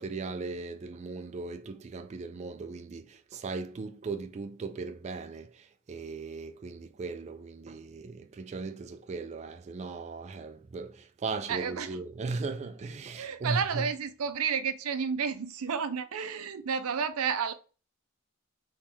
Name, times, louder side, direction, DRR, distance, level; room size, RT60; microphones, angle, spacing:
voice 1, 0.0-13.9, right 4 dB, 30° right, 0.3 m, -38 dB
voice 2, 11.5-12.0 13.2-17.5, right 6 dB, 90° right, 0.5 m, -31 dB
3.5 x 3.2 x 4.1 m
head